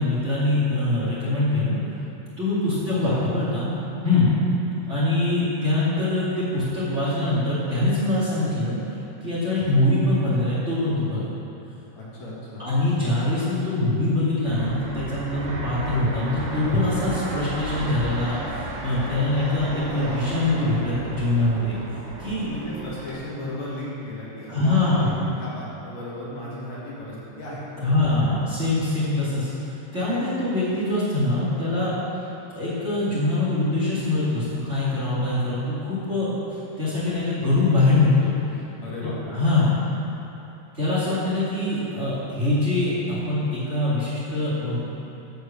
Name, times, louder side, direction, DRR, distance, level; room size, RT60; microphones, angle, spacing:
voice 1, 0.0-1.8 2.4-3.7 4.0-4.3 4.9-8.8 9.2-11.2 12.6-18.4 18.8-21.7 22.2-22.5 24.5-25.3 27.8-29.5 29.9-32.0 32.5-38.3 39.0-39.7 40.7-44.8, left 2 dB, 35° right, -9 dB, 1.2 m, -23 dB
voice 2, 2.8-3.2 12.0-12.7 22.4-28.1 38.8-39.4, left 1 dB, 50° left, -8 dB, 2.4 m, -35 dB
Fixed-wing aircraft airplane, 14.5-23.1, right 1 dB, 75° right, 3.7 m, -34 dB
14.0 x 4.9 x 7.3 m, 3.0 s
omnidirectional pair, 5.6 m